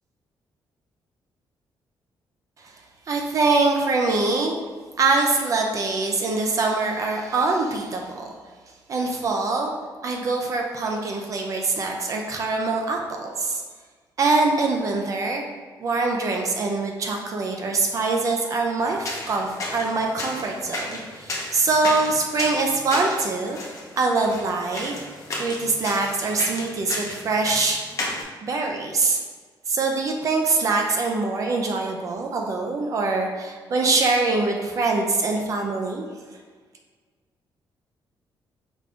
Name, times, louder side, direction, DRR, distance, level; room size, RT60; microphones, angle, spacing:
voice 1, 3.1-4.5 5.0-8.3 8.9-9.7 10.0-13.6 14.2-15.4 15.8-23.6 24.0-24.9 25.4-27.8 28.4-29.2 29.7-36.0, right 3 dB, 40° right, 1 dB, 0.4 m, -24 dB
sound 1, 18.8-28.2, left 2 dB, 40° left, 0.7 m, -34 dB
5.1 x 2.5 x 3.3 m, 1.5 s
cardioid pair, 165°, 8 cm